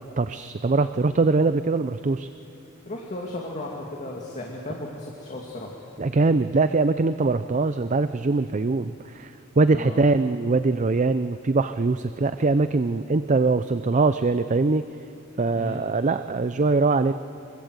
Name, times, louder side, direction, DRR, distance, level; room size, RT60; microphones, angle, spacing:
voice 1, 0.0-2.3 6.0-14.8 15.4-17.1, right 3 dB, 35° right, 11 dB, 0.5 m, -22 dB
voice 2, 2.9-5.7 9.7-10.0 15.5-15.8, left 1 dB, 35° left, -1 dB, 2.4 m, -35 dB
25.5 x 23.0 x 8.1 m, 2.7 s
head